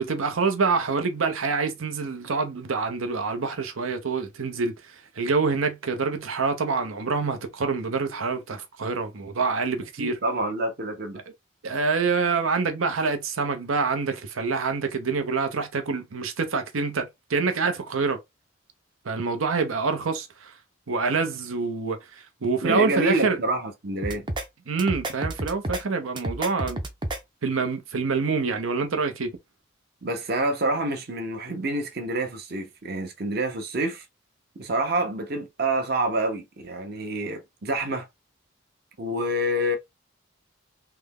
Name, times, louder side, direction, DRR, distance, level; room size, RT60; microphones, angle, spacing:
voice 1, 0.0-10.2 11.6-18.2 19.0-20.5 20.9-23.4 24.7-26.8 27.4-29.3, right 4 dB, 85° right, 0.7 m, -26 dB
voice 2, 10.0-11.2 22.6-24.3 30.0-34.0 34.6-38.1 39.0-39.8, right 1 dB, 50° right, 0.8 m, -27 dB
sound 1, 24.0-24.5 24.8-25.8 26.2-27.2, right 1 dB, 25° right, 0.5 m, -30 dB
3.4 x 2.1 x 3.5 m
head